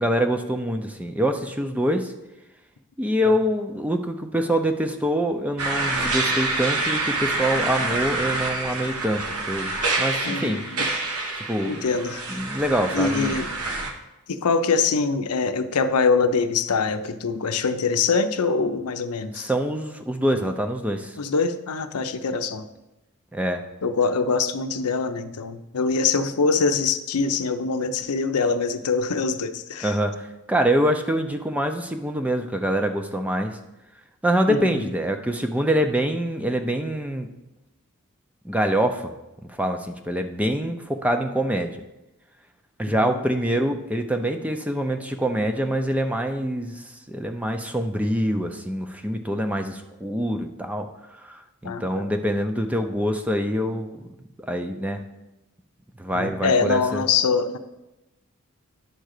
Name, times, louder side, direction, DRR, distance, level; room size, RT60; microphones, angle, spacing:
voice 1, 0.0-2.1 3.0-10.6 11.4-11.8 12.3-13.4 19.3-21.2 23.3-23.6 29.8-33.6 34.2-37.3 38.4-39.1 39.5-41.8 42.8-50.9 51.2-54.0 54.5-55.0 56.0-57.0, equal, 5° right, 6 dB, 0.5 m, -25 dB
sound 1, 5.6-13.9, right 2 dB, 85° right, 1.2 m, -27 dB
voice 2, 10.2-10.9 11.6-12.2 12.9-13.5 14.3-19.5 21.2-22.6 23.8-29.9 34.5-34.9 43.0-43.1 51.6-52.0 56.1-57.6, left 4 dB, 90° left, 9 dB, 0.6 m, -24 dB
10.5 x 3.8 x 6.5 m, 0.97 s
head